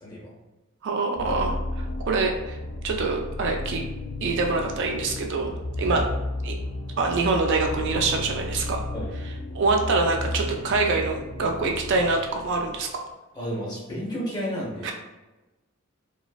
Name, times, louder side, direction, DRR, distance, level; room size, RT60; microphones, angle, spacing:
voice 1, 0.0-0.4 5.9-6.0 8.9-9.1 13.4-14.9, equal, 20° left, -5 dB, 0.8 m, -32 dB
voice 2, 0.8-2.6 2.8-3.8 4.2-6.1 6.4-6.6 7.0-8.8 9.5-12.9 14.8-14.9, right 3 dB, 55° right, 3 dB, 0.3 m, -25 dB
sound 1, 1.1-13.0, left 2 dB, 50° left, 0.4 m, -33 dB
3.0 x 2.3 x 2.3 m, 1.1 s
head